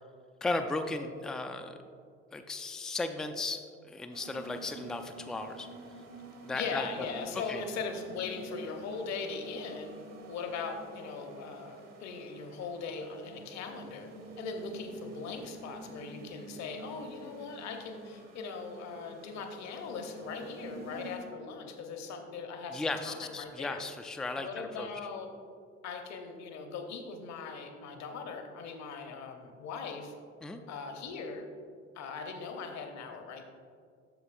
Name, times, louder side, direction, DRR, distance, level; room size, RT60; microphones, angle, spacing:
voice 1, 0.4-1.8 2.3-5.7 6.4-6.8 7.5-7.6 22.7-24.5 24.8-24.9 30.4-30.6, left 3 dB, ahead, 7 dB, 0.3 m, -35 dB
sound 1, 4.1-21.2, right 1 dB, 50° right, 1.0 m, -48 dB
voice 2, 6.5-9.9 10.3-14.1 14.4-23.8 24.3-25.3 25.8-30.1 30.7-31.5 31.9-33.4, left 5 dB, 50° left, 5 dB, 0.9 m, -40 dB
8.0 x 6.8 x 2.5 m, 2.2 s
figure-of-eight pair, 50°, 35 cm